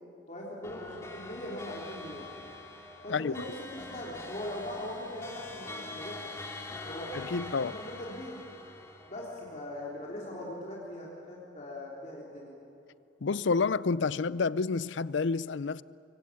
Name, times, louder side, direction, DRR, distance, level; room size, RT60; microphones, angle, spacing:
voice 1, 0.3-2.3 3.0-6.3 6.8-8.4 9.1-12.6, left 1 dB, 40° left, 3.6 m, -41 dB
sound 1, 0.6-10.3, left 2 dB, 15° left, 2.4 m, -44 dB
voice 2, 7.1-7.7 13.2-15.8, left 4 dB, 75° left, 0.5 m, -29 dB
25.0 x 25.0 x 8.6 m
head